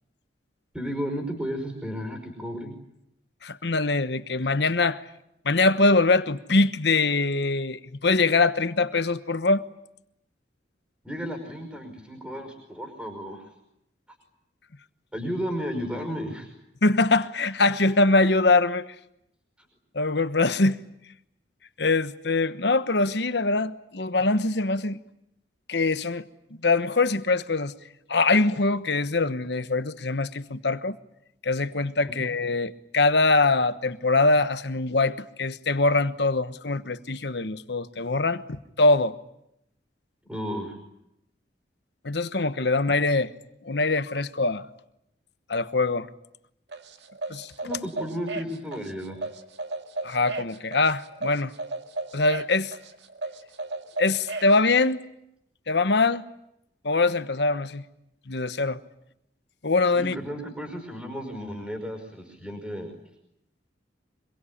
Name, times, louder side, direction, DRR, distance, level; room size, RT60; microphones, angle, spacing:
voice 1, 0.7-2.8 11.0-13.5 15.1-16.5 32.2-32.3 40.3-40.8 47.6-49.3 59.9-62.9, equal, 5° right, 5.3 m, -33 dB
voice 2, 3.4-5.0 5.4-9.6 16.8-18.9 19.9-20.8 21.8-25.0 25.7-26.2 26.6-27.7 28.1-31.0 31.4-39.1 42.0-43.3 43.6-44.7 45.5-46.1 47.3-47.5 50.0-51.5 52.1-52.7 54.0-55.0 55.7-56.2 56.8-57.8 58.3-58.8 59.6-60.2, left 3 dB, 65° left, 1.2 m, -23 dB
sound 1, 46.7-54.6, right 2 dB, 70° right, 2.0 m, -35 dB
25.5 x 22.5 x 10.0 m
head